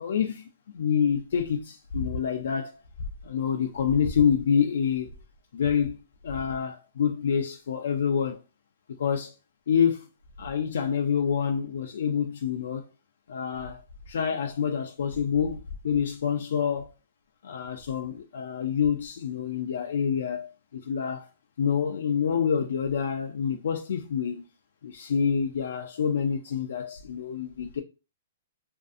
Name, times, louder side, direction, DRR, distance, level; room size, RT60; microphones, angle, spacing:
voice 1, 0.0-2.8 3.2-5.1 5.5-8.4 8.9-9.3 9.7-10.1 10.4-12.8 13.3-16.9 17.4-21.3 21.6-24.5 24.8-27.8, left 7 dB, 75° left, 0.3 m, -27 dB
2.5 x 2.3 x 2.4 m
hypercardioid pair, 165°, 0 cm